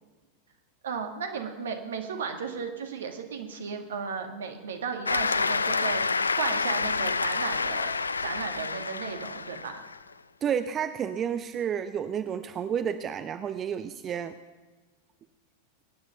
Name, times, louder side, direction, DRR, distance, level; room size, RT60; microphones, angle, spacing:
voice 1, 0.8-8.0 8.2-9.7, right 6 dB, 65° right, 5 dB, 1.9 m, -35 dB
Cheering / Applause, 5.1-10.0, left 4 dB, 75° left, 0.4 m, -28 dB
voice 2, 10.4-14.4, right 8 dB, 25° right, 11 dB, 0.6 m, -30 dB
22.5 x 9.7 x 5.7 m, 1.3 s
figure-of-eight pair, 90°, 0 cm